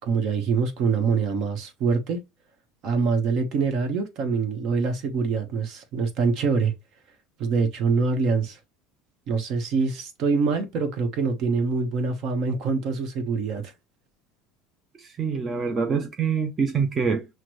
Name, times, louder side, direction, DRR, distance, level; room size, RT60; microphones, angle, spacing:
voice 1, 0.0-2.2 2.8-6.7 7.4-8.6 9.3-13.7, right 4 dB, 55° right, 1.1 m, -25 dB
voice 2, 15.0-17.3, right 5 dB, 25° right, 0.5 m, -25 dB
5.9 x 2.2 x 3.0 m
supercardioid pair, 125°, 0 cm